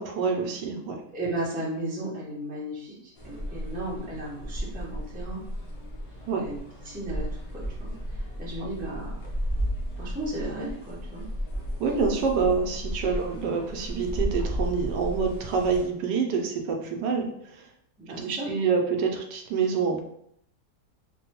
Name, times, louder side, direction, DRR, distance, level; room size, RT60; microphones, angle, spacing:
voice 1, 0.0-1.0 6.3-6.4 8.6-8.7 11.8-17.7 18.1-20.0, right 5 dB, 80° right, 3 dB, 1.2 m, -27 dB
voice 2, 1.1-5.4 6.4-6.6 6.8-9.2 10.0-11.3 18.0-18.5, right 1 dB, 10° right, -6 dB, 0.5 m, -35 dB
sound 1, 3.2-15.9, equal, 55° left, 0.4 m, -34 dB
3.3 x 2.2 x 2.9 m, 0.68 s
omnidirectional pair, 1.8 m